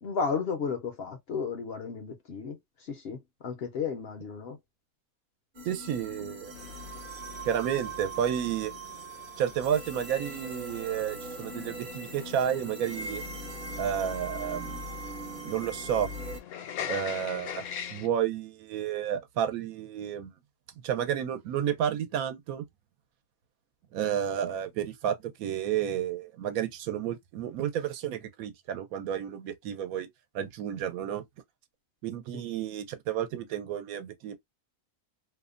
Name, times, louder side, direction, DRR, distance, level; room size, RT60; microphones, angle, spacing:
voice 1, 0.0-4.6, left 5 dB, 60° left, 0.7 m, -33 dB
sound 1, 5.5-16.4, right 2 dB, 50° right, 0.8 m, -40 dB
voice 2, 5.6-6.5 7.4-8.7 9.4-13.2 13.8-14.8 15.4-16.1 16.9-17.6 17.9-20.3 20.8-22.6 23.9-30.1 30.3-31.2 32.0-34.4, right 9 dB, 85° right, 1.0 m, -31 dB
sound 2, 6.5-18.1, left 9 dB, 85° left, 1.0 m, -44 dB
2.6 x 2.1 x 2.4 m
omnidirectional pair, 1.5 m